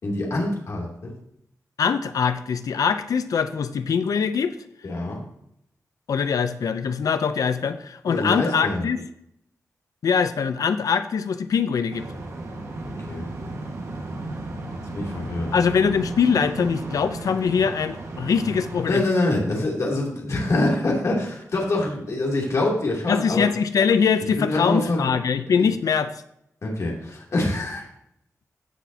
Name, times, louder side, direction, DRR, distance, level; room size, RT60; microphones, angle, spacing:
voice 1, 0.0-1.1 4.8-5.2 8.1-8.9 13.1-13.3 14.9-15.5 18.9-23.5 24.4-25.1 25.6-25.7 26.6-27.9, left 2 dB, 60° left, -2 dB, 3.0 m, -25 dB
voice 2, 1.8-4.5 6.1-9.1 10.0-12.1 15.5-19.0 23.1-26.1, left 6 dB, 80° left, 11 dB, 0.7 m, -22 dB
sound 1, 11.9-18.9, right 2 dB, 55° right, 1.7 m, -34 dB
15.0 x 6.2 x 2.9 m, 0.75 s
wide cardioid pair, 115°, 6 cm